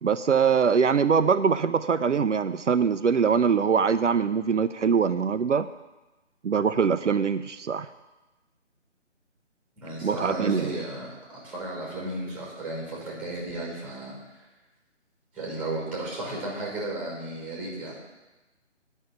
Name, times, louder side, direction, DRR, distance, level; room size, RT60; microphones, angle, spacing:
voice 1, 0.0-5.7 6.4-7.9 10.0-10.7, right 6 dB, 75° right, 10 dB, 0.6 m, -23 dB
voice 2, 9.8-14.2 15.3-18.0, right 1 dB, 5° right, -4 dB, 1.7 m, -34 dB
9.8 x 5.6 x 8.2 m, 1.1 s
figure-of-eight pair, 150°, 36 cm